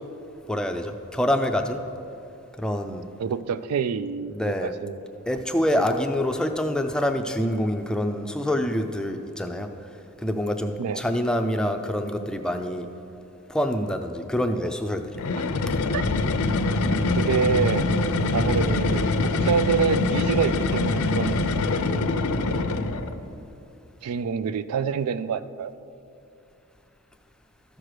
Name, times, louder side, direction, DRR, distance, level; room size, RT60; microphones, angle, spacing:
voice 1, 0.5-1.8 2.6-3.0 4.3-4.7 5.3-9.7 10.2-12.9 13.5-15.1, left 1 dB, 5° left, 5 dB, 0.4 m, -26 dB
voice 2, 3.2-5.0 5.8-5.9 10.8-11.0 15.9-16.2 17.2-17.9 18.3-21.4 24.0-25.7, right 6 dB, 85° right, 14 dB, 0.4 m, -26 dB
sound 1, 15.1-23.2, left 3 dB, 70° left, 0.6 m, -24 dB
13.0 x 6.2 x 4.9 m, 2.7 s
head